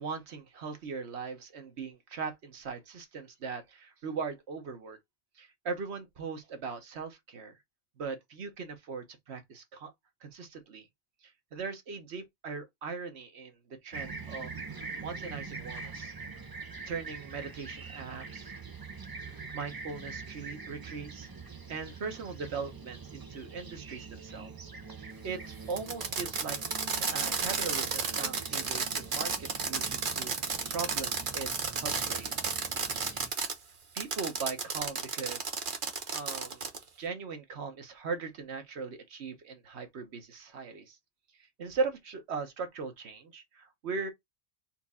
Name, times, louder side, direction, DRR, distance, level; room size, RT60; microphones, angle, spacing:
voice 1, 0.0-5.0 5.3-7.6 8.0-9.9 10.2-10.9 11.2-16.1 16.8-18.5 19.3-21.3 21.7-24.7 25.0-26.6 26.9-31.5 31.7-32.3 33.9-35.5 36.1-36.6 37.0-41.0 41.3-44.1, right 5 dB, 90° right, 1.2 m, -39 dB
Fixed-wing aircraft airplane, 13.9-33.3, right 4 dB, 25° right, 0.5 m, -44 dB
Fireworks, 25.7-33.5 34.0-36.8, right 5 dB, 50° right, 1.0 m, -33 dB
4.4 x 2.4 x 4.0 m
omnidirectional pair, 1.1 m